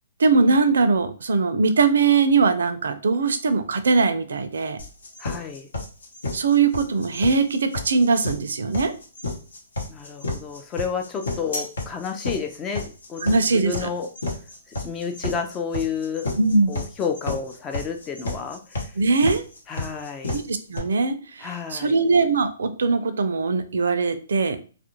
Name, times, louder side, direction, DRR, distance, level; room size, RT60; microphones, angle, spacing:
voice 1, 0.2-4.8 6.3-8.9 13.2-13.9 16.4-16.7 19.0-19.4 20.3-24.6, right 4 dB, 80° right, 9 dB, 0.4 m, -21 dB
sound 1, 4.8-20.8, left 2 dB, 85° left, 0.9 m, -31 dB
voice 2, 5.2-5.7 9.9-14.1 14.7-16.3 16.7-18.9 19.7-20.4 21.4-22.0, left 6 dB, 20° left, 5 dB, 0.3 m, -31 dB
2.4 x 2.0 x 2.9 m, 0.37 s
hypercardioid pair, 150°, 0 cm